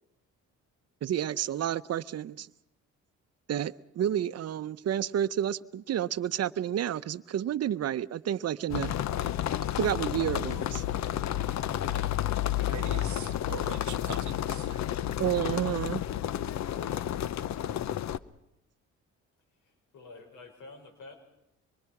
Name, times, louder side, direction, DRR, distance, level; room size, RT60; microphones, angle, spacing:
voice 1, 1.0-2.5 3.5-9.0 9.8-10.8 15.2-16.0, right 10 dB, 55° right, 0.7 m, -30 dB
sound 1, 8.7-18.2, left 12 dB, 65° left, 0.8 m, -31 dB
voice 2, 12.2-14.9, right 12 dB, 70° right, 1.1 m, -44 dB
voice 3, 19.6-21.1, left 3 dB, 90° left, 5.9 m, -49 dB
25.0 x 23.0 x 6.0 m
cardioid pair, 90°, 30 cm